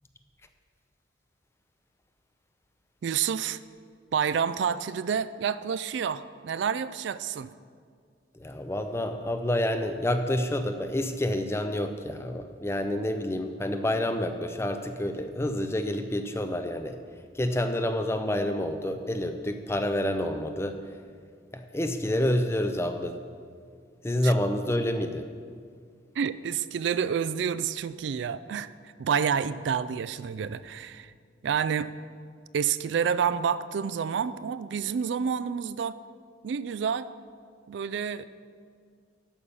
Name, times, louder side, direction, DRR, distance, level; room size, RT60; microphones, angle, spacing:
voice 1, 3.0-3.6 4.1-7.5 24.2-24.3 26.2-28.7 29.0-31.1 31.4-31.9 32.5-36.0 36.4-37.1 37.7-38.3, right 7 dB, 65° right, 15 dB, 0.3 m, -29 dB
voice 2, 8.3-17.0 17.3-20.8 21.5-23.2 24.0-25.3, left 1 dB, 15° left, 7 dB, 0.5 m, -28 dB
11.5 x 5.6 x 6.9 m, 2.1 s
head